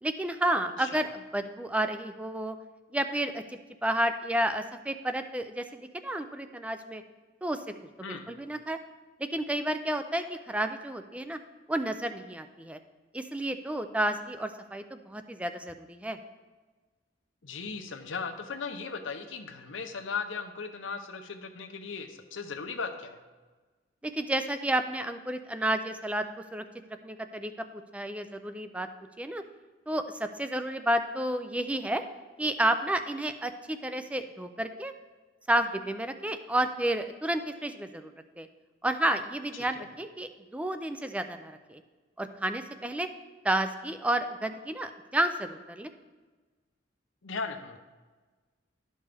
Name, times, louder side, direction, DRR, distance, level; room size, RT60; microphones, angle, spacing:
voice 1, 0.0-2.6 2.9-7.0 7.4-7.6 8.1-8.8 9.3-11.4 11.7-12.8 13.1-16.2 24.0-26.2 26.5-26.6 27.0-28.9 29.2-29.4 29.9-32.0 32.4-34.9 35.5-38.1 38.4-38.5 38.8-41.8 42.2-43.1 43.4-45.9, right 1 dB, 5° right, 8 dB, 0.4 m, -31 dB
voice 2, 17.4-23.2 39.5-39.9 47.2-47.8, left 5 dB, 85° left, 6 dB, 0.7 m, -37 dB
11.5 x 5.4 x 3.4 m, 1.3 s
head